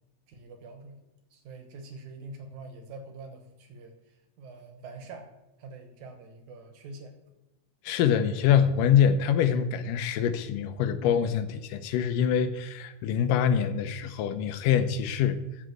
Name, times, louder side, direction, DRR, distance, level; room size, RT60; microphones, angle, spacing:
voice 1, 0.3-1.0 1.3-5.3 5.6-7.2, right 3 dB, 70° right, 6 dB, 2.5 m, -45 dB
voice 2, 7.9-15.4, left 8 dB, 90° left, 10 dB, 2.4 m, -25 dB
12.5 x 5.1 x 7.8 m, 0.96 s
omnidirectional pair, 3.7 m